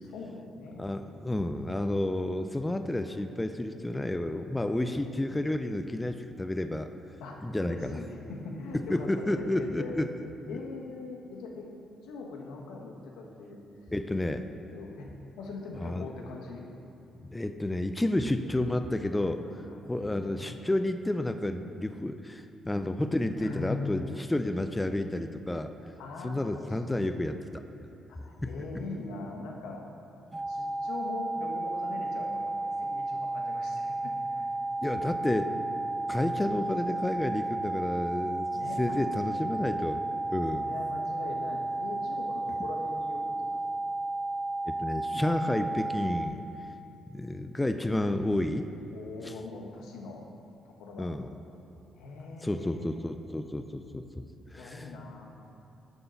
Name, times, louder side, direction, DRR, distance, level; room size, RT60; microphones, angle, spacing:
voice 1, 0.0-0.9 7.2-10.0 10.5-11.7 12.0-13.6 14.7-16.7 19.4-20.5 23.4-24.0 26.0-27.2 28.1-29.9 30.5-34.5 34.9-35.4 38.5-39.3 40.5-43.6 48.9-50.2 50.6-51.1 51.9-53.0 54.6-55.3, left 3 dB, 90° left, 0 dB, 1.2 m, -41 dB
voice 2, 0.8-6.9 7.4-8.0 8.9-10.1 10.4-10.6 13.9-14.5 15.8-16.1 17.2-19.4 19.9-25.7 26.2-27.6 30.3-30.4 34.8-35.5 36.1-38.5 38.8-40.0 40.3-40.7 44.7-46.4 47.1-48.7 49.2-49.3 51.0-51.3 52.4-54.2 54.5-54.9, left 1 dB, 10° left, 8 dB, 0.4 m, -30 dB
sound 1, 30.3-46.3, right 2 dB, 35° right, 1.3 m, -33 dB
9.5 x 3.9 x 6.9 m, 2.7 s
cardioid pair, 90°, 0 cm